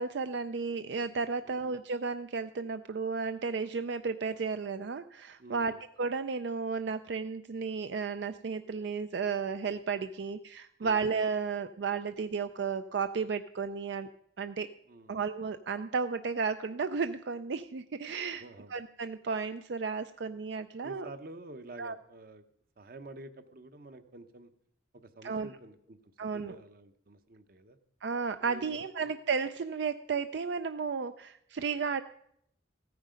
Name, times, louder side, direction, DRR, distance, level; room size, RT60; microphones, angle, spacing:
voice 1, 0.0-14.1 14.4-14.7 15.1-18.4 18.7-21.1 21.8-22.0 25.2-25.5 26.2-26.6 28.0-32.0, right 5 dB, 75° right, 10 dB, 0.4 m, -33 dB
voice 2, 5.4-5.8 10.8-11.0 14.9-15.2 18.4-18.7 20.8-22.4 22.8-24.5 24.9-27.8 28.4-29.1, right 2 dB, 50° right, 11 dB, 0.9 m, -49 dB
15.0 x 9.5 x 5.1 m, 0.71 s
head